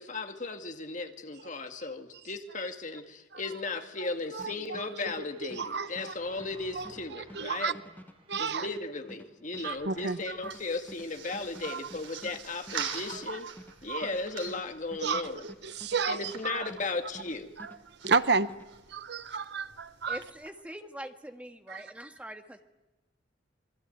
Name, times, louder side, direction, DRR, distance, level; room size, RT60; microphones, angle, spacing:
voice 1, 0.0-7.8 8.4-13.5 13.8-15.5 16.1-17.5, left 3 dB, 40° left, 6 dB, 2.0 m, -36 dB
voice 2, 4.0-4.9 5.4-6.1 6.7-7.7 8.3-8.7 9.6-10.5 11.6-11.8 13.1-13.4 13.9-14.1 15.0-16.7 17.6-17.7 18.0-18.5 18.9-20.2 21.7-21.8, right 4 dB, 60° right, 13 dB, 0.9 m, -32 dB
sound 1, 4.4-17.3 17.6-18.7, left 1 dB, 10° left, 1.3 m, -50 dB
sound 2, 4.8-9.8, right 2 dB, 30° right, 3.7 m, -57 dB
sound 3, 9.6-20.5, right 7 dB, 90° right, 3.8 m, -45 dB
voice 3, 20.1-22.6, right 1 dB, 5° right, 6 dB, 1.6 m, -43 dB
26.5 x 23.0 x 9.2 m, 1.0 s
head